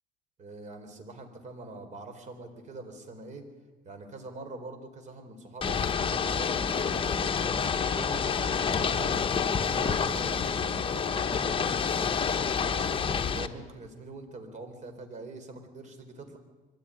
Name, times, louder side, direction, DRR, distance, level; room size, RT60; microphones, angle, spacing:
voice 1, 0.4-3.4 3.8-7.4 7.7-9.2 9.6-16.4, right 2 dB, 45° right, 6 dB, 4.1 m, -44 dB
Ocean / Boat Water vehicle, 5.6-13.5, left 6 dB, 30° left, 1.2 m, -28 dB
23.5 x 14.0 x 9.9 m, 1.3 s
cardioid pair, 110°, 17 cm